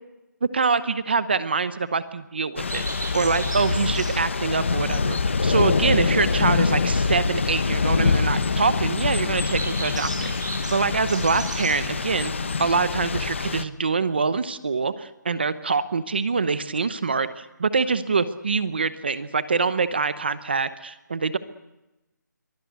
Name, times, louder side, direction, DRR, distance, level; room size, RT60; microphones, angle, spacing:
voice 1, 0.5-2.8 3.1-12.3 12.6-21.4, right 4 dB, 30° right, 14 dB, 0.9 m, -25 dB
Thunder / Rain, 2.6-13.6, left 4 dB, 40° left, 1.1 m, -24 dB
sound 1, 2.6-13.2, right 2 dB, 75° right, 7.9 m, -39 dB
23.5 x 19.5 x 8.2 m, 0.97 s
hypercardioid pair, 180°, 10 cm